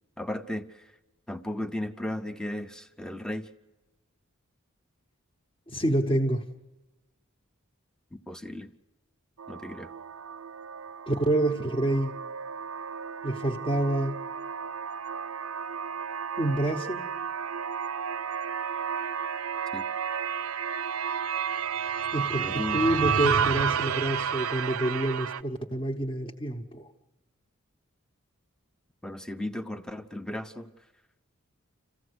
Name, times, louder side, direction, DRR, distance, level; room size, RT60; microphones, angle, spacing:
voice 1, 0.2-0.9 1.3-3.5 8.1-8.7 9.5-9.9 19.7-19.8 22.4-22.8 29.0-30.7, left 1 dB, 5° left, 10 dB, 0.7 m, -35 dB
voice 2, 5.7-6.4 11.1-12.1 13.2-14.1 16.4-17.0 22.1-26.9, right 1 dB, 25° left, 0 dB, 1.0 m, -27 dB
sound 1, 9.4-25.4, right 7 dB, 85° right, 0.6 m, -32 dB
27.5 x 15.5 x 8.1 m, 1.1 s
head